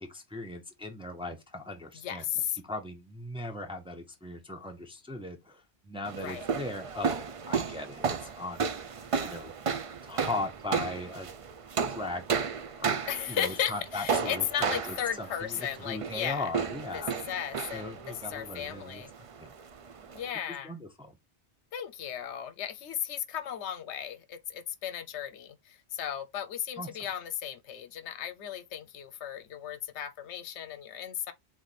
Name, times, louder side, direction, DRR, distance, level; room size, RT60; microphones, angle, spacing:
voice 1, 0.1-2.2 2.6-8.6 8.9-9.5 10.0-11.3 11.9-12.5 12.8-17.1 17.7-19.0 19.4-19.5 20.6-21.2 26.8-26.9, left 2 dB, 5° right, 0.7 m, -39 dB
voice 2, 1.9-2.6 6.2-6.4 13.1-16.5 16.9-19.1 20.1-20.7 21.7-31.3, left 9 dB, 80° left, 0.9 m, -35 dB
sound 1, 6.0-20.3, right 6 dB, 50° right, 0.4 m, -34 dB
3.7 x 3.2 x 4.0 m
omnidirectional pair, 1.2 m